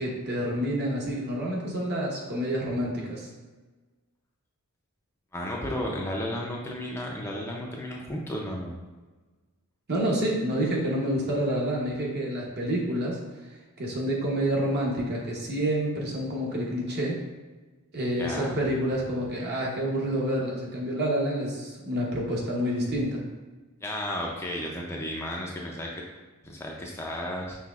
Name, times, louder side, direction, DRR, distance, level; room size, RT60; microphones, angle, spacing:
voice 1, 0.0-3.3 9.9-13.2 13.8-17.2 17.9-23.2, right 1 dB, 50° right, -3 dB, 1.0 m, -28 dB
voice 2, 5.3-8.8 18.2-18.6 23.8-25.9 26.4-27.6, left 1 dB, 10° left, -2 dB, 0.4 m, -33 dB
5.8 x 3.2 x 2.4 m, 1.3 s
head